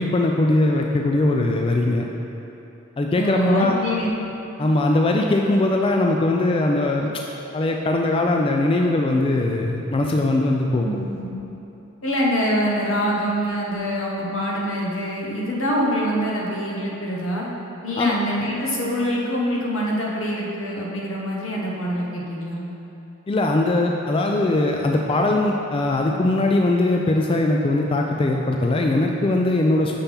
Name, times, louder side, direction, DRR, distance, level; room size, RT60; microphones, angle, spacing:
voice 1, 0.0-2.1 3.0-3.7 4.6-7.1 7.5-10.9 18.0-18.1 23.3-30.0, left 2 dB, 25° left, 1 dB, 0.3 m, -20 dB
voice 2, 3.1-4.1 10.7-11.3 12.0-17.5 17.8-22.6, equal, 80° left, -3 dB, 1.2 m, -25 dB
6.9 x 5.8 x 3.5 m, 3.0 s
head